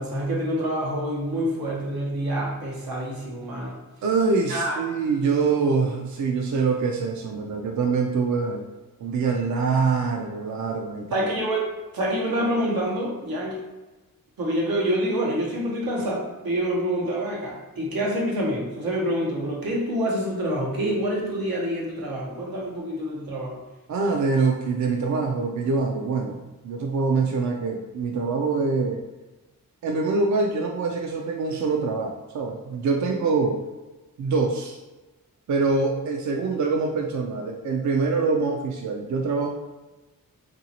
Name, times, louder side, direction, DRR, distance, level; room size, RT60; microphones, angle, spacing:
voice 1, 0.0-3.7 4.5-4.8 11.1-11.7 11.9-13.6 14.4-23.6, equal, 85° right, -3 dB, 1.0 m, -27 dB
voice 2, 4.0-8.7 9.0-11.3 23.9-29.0 29.8-33.6 34.2-34.8 35.5-39.5, right 4 dB, 55° right, 1 dB, 0.4 m, -24 dB
3.0 x 2.6 x 2.9 m, 1.1 s
cardioid pair, 70°, 35 cm